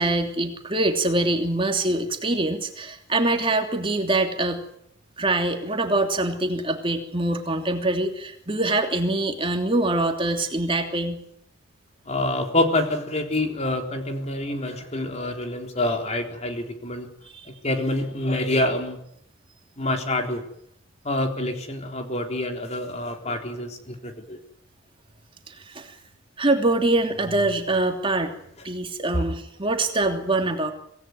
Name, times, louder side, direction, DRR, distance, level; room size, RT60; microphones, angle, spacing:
voice 1, 0.0-4.6 5.2-11.2 17.3-17.5 25.5-25.9 26.4-28.4 28.6-30.7, right 2 dB, 25° right, 4 dB, 3.1 m, -24 dB
voice 2, 12.0-17.1 17.4-19.0 19.8-20.4 21.0-24.4 29.1-29.2 30.0-30.2, left 1 dB, 35° left, 4 dB, 3.7 m, -26 dB
25.5 x 18.5 x 9.4 m, 0.72 s
head